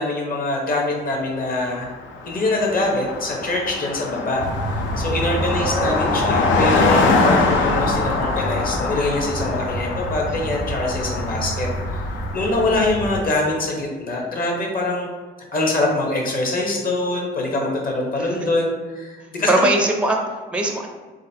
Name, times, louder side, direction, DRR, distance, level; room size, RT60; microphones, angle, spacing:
voice 1, 0.0-1.9 2.3-11.7 12.3-15.1 15.5-19.7, left 2 dB, 45° left, -1 dB, 1.1 m, -24 dB
Car passing by, 1.7-1.8 2.0-13.0, left 3 dB, 75° left, 0.6 m, -24 dB
voice 2, 3.9-4.3 5.3-6.1 10.3-10.4 18.2-18.5 19.5-20.9, right 1 dB, 5° right, 3 dB, 0.5 m, -23 dB
sound 1, 4.4-13.2, right 2 dB, 70° right, 0.6 m, -29 dB
3.9 x 3.5 x 2.8 m, 1.4 s
cardioid pair, 90°, 20 cm